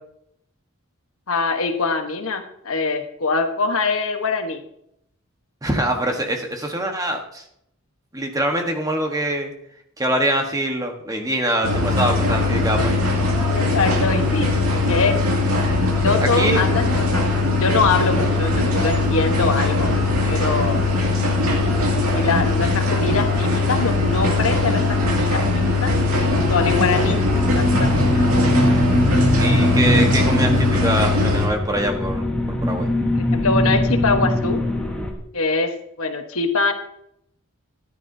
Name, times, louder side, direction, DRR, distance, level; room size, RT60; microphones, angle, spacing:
voice 1, 1.3-4.6 13.5-15.2 16.0-17.2 17.5-19.9 20.2-20.8 21.6-21.7 22.1-25.9 26.5-27.2 27.5-28.0 33.1-34.6 35.3-36.7, left 4 dB, 70° left, 6 dB, 1.1 m, -23 dB
voice 2, 5.6-7.4 8.1-9.5 10.0-13.0 16.3-16.6 29.4-32.9, right 1 dB, 15° right, 4 dB, 1.2 m, -24 dB
sound 1, 11.6-31.5, left 3 dB, 75° right, 2.4 m, -20 dB
sound 2, 26.0-35.1, equal, 5° left, 1.2 m, -22 dB
13.5 x 9.9 x 2.7 m, 0.74 s
head